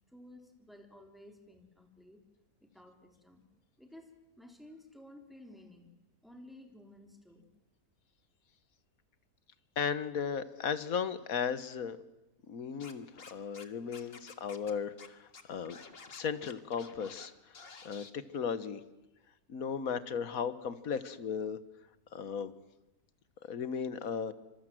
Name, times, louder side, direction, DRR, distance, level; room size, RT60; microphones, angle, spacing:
voice 1, 0.1-2.2 2.6-3.4 3.8-4.1 4.4-5.9 6.2-7.5, left 1 dB, ahead, 3 dB, 3.6 m, -54 dB
voice 2, 9.8-12.0 12.5-15.8 16.1-17.3 17.8-18.8 19.5-21.6 22.1-22.5 23.5-24.3, left 6 dB, 70° left, 13 dB, 1.6 m, -36 dB
Scratching (performance technique), 12.8-13.6 13.9-14.7 15.0-15.1 15.3-17.3 17.5-18.1, left 4 dB, 40° left, 1.7 m, -51 dB
26.0 x 24.0 x 7.7 m, 0.94 s
omnidirectional pair, 1.6 m